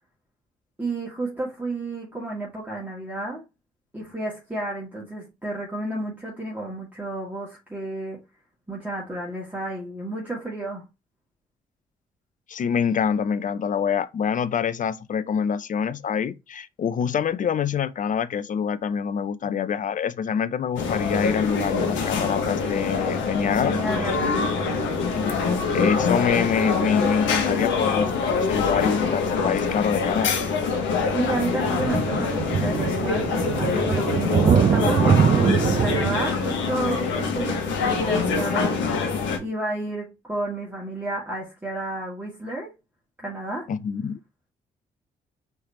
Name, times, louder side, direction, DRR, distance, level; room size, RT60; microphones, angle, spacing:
voice 1, 0.8-3.4 3.9-8.2 8.7-10.8 23.5-24.9 31.1-38.8 39.4-42.7 43.2-43.7, right 2 dB, 10° right, 2.1 m, -31 dB
voice 2, 12.5-24.1 24.4-24.5 25.1-30.3 43.7-44.2, left 7 dB, 40° left, 0.5 m, -25 dB
sound 1, 20.8-39.4, left 4 dB, 75° left, 0.9 m, -25 dB
sound 2, 23.9-25.2 31.0-36.3, right 7 dB, 35° right, 0.4 m, -23 dB
4.7 x 3.3 x 2.8 m
hypercardioid pair, 40°, 20 cm